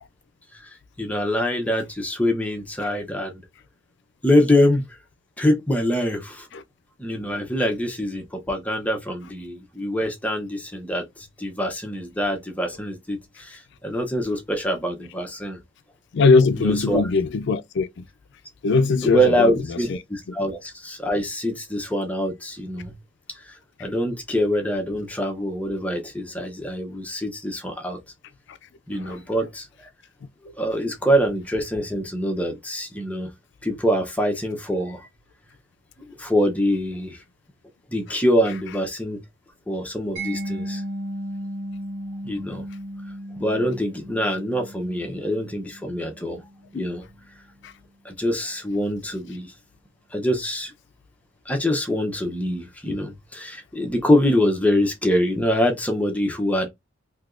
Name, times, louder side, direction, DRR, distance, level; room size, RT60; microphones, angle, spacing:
voice 1, 0.5-3.4 4.2-4.8 5.4-6.5 7.0-15.6 16.6-17.0 19.0-22.9 23.4-28.0 28.9-29.7 30.6-33.3 33.6-35.1 36.1-37.2 37.9-39.2 39.7-40.8 42.2-42.6 43.4-46.4 46.7-47.0 48.0-49.5 50.1-50.7 51.5-56.7, equal, 10° left, 0.7 m, -24 dB
voice 2, 16.1-18.0 18.6-19.5 29.0-29.2 46.7-46.8, left 4 dB, 65° left, 0.4 m, -20 dB
Mallet percussion, 40.2-46.9, right 1 dB, 60° right, 1.6 m, -35 dB
3.5 x 2.8 x 2.4 m
head